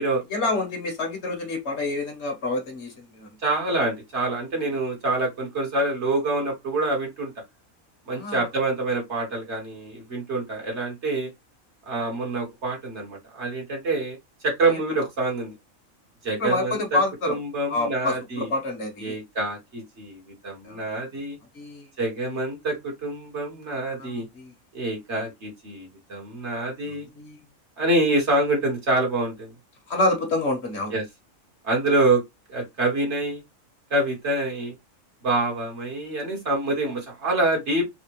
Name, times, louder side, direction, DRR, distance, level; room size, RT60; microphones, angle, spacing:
voice 1, 0.3-3.3 8.1-8.5 16.4-17.4 17.7-19.2 20.6-20.8 21.5-21.9 24.0-24.5 27.2-27.4 29.9-30.9, left 2 dB, 55° left, 1.3 m, -27 dB
voice 2, 3.4-7.3 8.1-11.3 11.9-14.2 14.4-15.5 16.2-17.0 17.3-18.5 19.0-21.4 22.0-24.3 24.7-27.1 27.8-29.5 30.9-31.0 31.6-32.2 32.5-33.4 33.9-34.7 35.2-37.8, right 2 dB, 55° right, 1.6 m, -26 dB
4.0 x 2.2 x 3.0 m
omnidirectional pair, 1.4 m